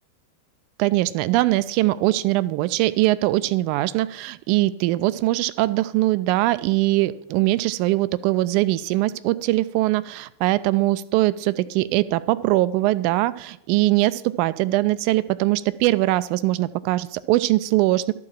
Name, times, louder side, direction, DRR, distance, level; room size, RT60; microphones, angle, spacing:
voice 1, 0.8-18.1, right 17 dB, 45° right, 17 dB, 0.3 m, -21 dB
12.0 x 4.6 x 7.3 m, 0.84 s
figure-of-eight pair, 90°, 0 cm